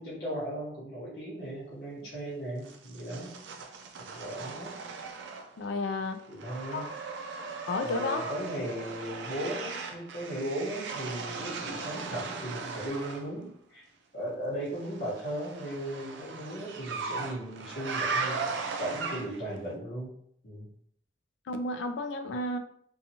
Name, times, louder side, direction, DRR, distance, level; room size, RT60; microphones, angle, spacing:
voice 1, 0.0-3.4 4.0-4.7 6.3-6.8 7.8-13.8 14.1-18.4 18.8-20.1 20.4-20.7, right 1 dB, 55° left, -7 dB, 0.9 m, -37 dB
sound 1, 2.6-5.7 6.0-13.3 14.8-19.5, right 4 dB, 70° right, 0.4 m, -38 dB
voice 2, 5.6-6.2 6.7-6.8 7.7-8.3 21.5-22.6, left 2 dB, 70° left, 7 dB, 0.3 m, -32 dB
2.8 x 2.3 x 2.7 m, 0.65 s
head